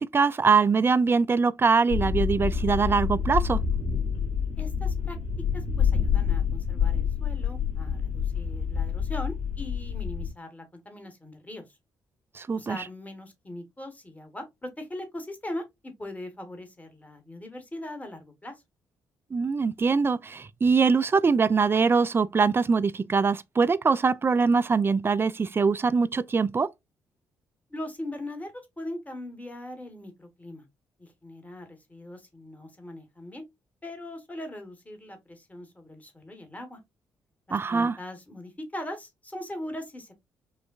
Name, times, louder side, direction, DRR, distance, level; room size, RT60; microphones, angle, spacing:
voice 1, 0.0-3.6 12.4-12.8 19.3-26.7 37.5-37.9, right 5 dB, 25° right, 0.3 m, -23 dB
sound 1, 1.9-10.3, left 7 dB, 65° left, 2.3 m, -27 dB
voice 2, 4.6-5.2 5.5-11.8 12.5-18.5 27.7-30.6 31.0-33.4 33.8-36.8 37.5-40.1, left 1 dB, 15° left, 1.2 m, -40 dB
5.4 x 2.2 x 2.3 m
figure-of-eight pair, 40°, 10 cm